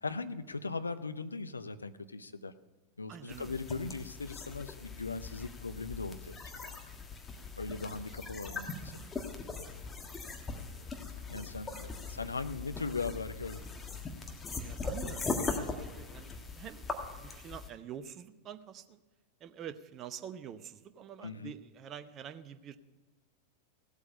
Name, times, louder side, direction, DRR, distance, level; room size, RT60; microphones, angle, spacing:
voice 1, 0.0-2.5 3.0-6.4 6.7-6.8 7.6-9.1 11.3-13.6 21.2-21.5, left 4 dB, 80° left, 11 dB, 0.6 m, -39 dB
voice 2, 3.1-3.5 10.5-10.9 11.7-11.9 14.5-19.0 19.4-22.8, right 9 dB, 30° right, 12 dB, 0.8 m, -47 dB
sound 1, 3.3-17.7, left 4 dB, 15° left, 1.5 m, -40 dB
16.5 x 8.2 x 5.4 m, 1.3 s
figure-of-eight pair, 90°, 0 cm